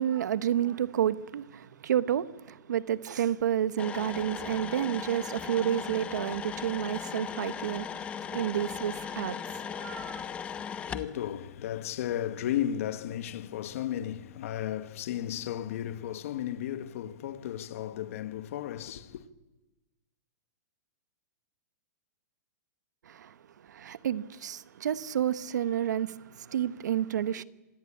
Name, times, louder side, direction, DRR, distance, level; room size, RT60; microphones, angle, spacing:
voice 1, 0.0-10.2 23.0-27.4, right 10 dB, 80° right, 1.1 m, -30 dB
sound 1, 3.8-11.1, left 7 dB, 15° left, 0.8 m, -37 dB
voice 2, 10.0-19.2, left 11 dB, 50° left, 1.4 m, -35 dB
26.5 x 19.0 x 8.6 m
hypercardioid pair, 165°, 9 cm